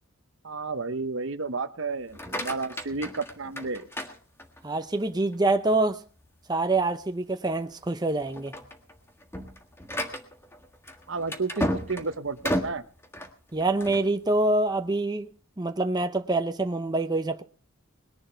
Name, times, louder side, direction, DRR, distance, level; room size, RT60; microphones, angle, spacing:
voice 1, 0.4-3.9 11.1-12.8, right 4 dB, 60° right, 0.9 m, -32 dB
sound 1, 2.0-4.8 5.3-5.8 6.2-6.3 6.8-6.9 7.6-7.9 8.2-14.1, equal, 10° left, 1.6 m, -34 dB
voice 2, 4.6-6.0 6.5-8.6 13.5-15.3 15.6-17.4, right 2 dB, 20° right, 0.7 m, -25 dB
20.5 x 11.0 x 4.5 m
head